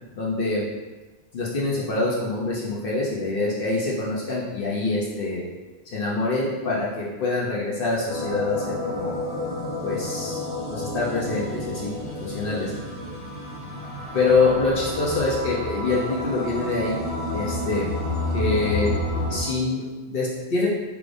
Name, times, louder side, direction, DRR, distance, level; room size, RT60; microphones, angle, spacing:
voice 1, 0.1-0.6 1.3-5.4 5.9-9.2 9.8-10.4 10.7-11.9 12.2-12.7 14.1-17.0 17.3-17.9 18.3-18.9 19.3-20.7, left 3 dB, 65° left, -4 dB, 0.8 m, -25 dB
sound 1, 8.1-19.4, left 1 dB, 90° left, 2.0 m, -30 dB
4.8 x 3.3 x 2.5 m, 1.2 s
omnidirectional pair, 1.1 m